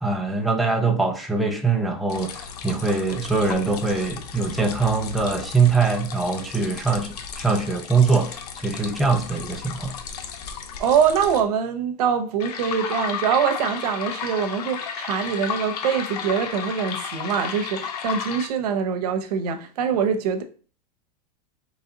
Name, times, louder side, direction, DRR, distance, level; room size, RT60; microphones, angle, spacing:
voice 1, 0.0-10.0, right 4 dB, ahead, 0.5 m, -23 dB
sound 1, 2.1-11.4 12.4-18.5, left 7 dB, 90° left, 0.8 m, -34 dB
voice 2, 10.8-20.4, right 7 dB, 90° right, 0.8 m, -24 dB
4.1 x 3.3 x 3.8 m
supercardioid pair, 150°, 20 cm